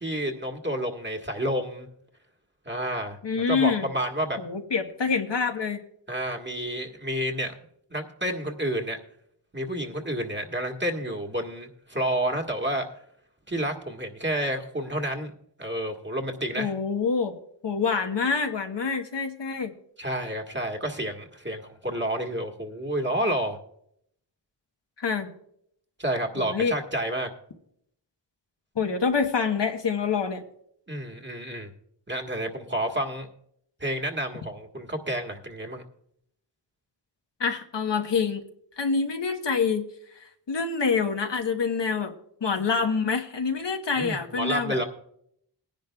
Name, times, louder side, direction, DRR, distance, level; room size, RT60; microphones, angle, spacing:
voice 1, 0.0-1.9 2.7-4.4 6.1-7.6 7.9-9.0 9.5-12.9 13.5-15.3 15.6-16.7 20.0-23.6 26.0-27.3 30.9-31.7 32.1-33.3 33.8-35.8 44.0-44.8, right 1 dB, 25° right, 2 dB, 1.7 m, -30 dB
voice 2, 3.2-3.9 4.4-5.8 16.6-17.4 17.6-19.7 25.0-25.3 26.4-26.7 28.7-30.4 37.4-38.5 38.8-39.9 40.5-42.1 42.4-44.8, left 5 dB, 75° left, 4 dB, 1.2 m, -26 dB
20.0 x 10.5 x 2.3 m, 0.71 s
cardioid pair, 40°, 43 cm